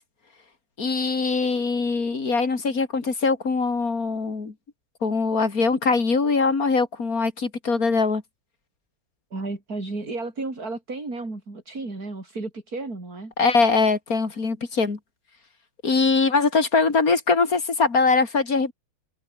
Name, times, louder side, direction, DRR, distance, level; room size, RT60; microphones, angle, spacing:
voice 1, 0.8-4.5 5.0-8.2 13.4-15.0 15.8-18.7, left 4 dB, 45° left, 3.2 m, -22 dB
voice 2, 9.3-13.3, right 3 dB, 45° right, 5.5 m, -33 dB
omnidirectional pair, 2.3 m